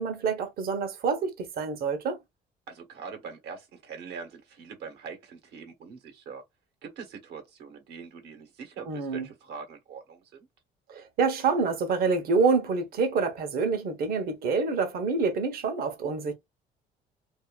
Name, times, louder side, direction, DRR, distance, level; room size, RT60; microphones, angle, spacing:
voice 1, 0.0-2.2 8.9-9.3 10.9-16.3, right 4 dB, 65° right, 1.0 m, -27 dB
voice 2, 2.7-6.4 6.8-10.5, right 5 dB, 80° right, 1.2 m, -43 dB
2.7 x 2.5 x 2.3 m
cardioid pair, 110°, 17 cm